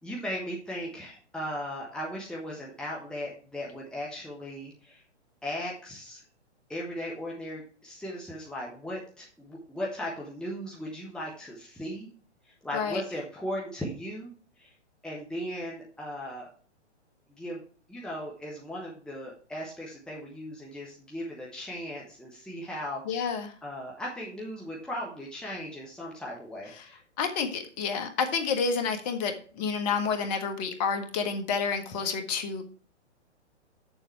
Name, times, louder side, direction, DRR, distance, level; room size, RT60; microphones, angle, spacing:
voice 1, 0.0-5.0 5.4-6.2 6.7-12.1 12.6-14.3 14.6-14.7 15.0-16.5 17.3-17.6 17.9-27.0, equal, ahead, -4 dB, 1.5 m, -37 dB
voice 2, 23.1-23.5 26.8-26.9 27.2-32.6, left 5 dB, 35° left, 7 dB, 1.6 m, -29 dB
7.7 x 7.1 x 4.6 m, 0.43 s
hypercardioid pair, 125°, 35 cm